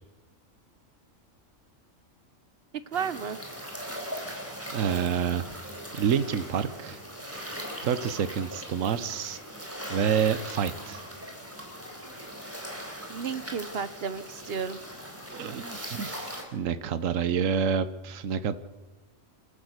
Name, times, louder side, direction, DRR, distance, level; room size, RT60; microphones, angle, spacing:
sound 1, 2.9-16.4, equal, 10° right, 4.1 m, -40 dB
voice 1, 2.9-3.4 13.1-14.8, right 6 dB, 55° right, 14 dB, 0.9 m, -32 dB
voice 2, 4.7-5.4 5.9-7.0 7.8-9.4 9.9-11.0 15.3-18.6, right 7 dB, 75° right, 12 dB, 1.3 m, -28 dB
27.0 x 12.5 x 8.1 m, 1.2 s
omnidirectional pair, 1.4 m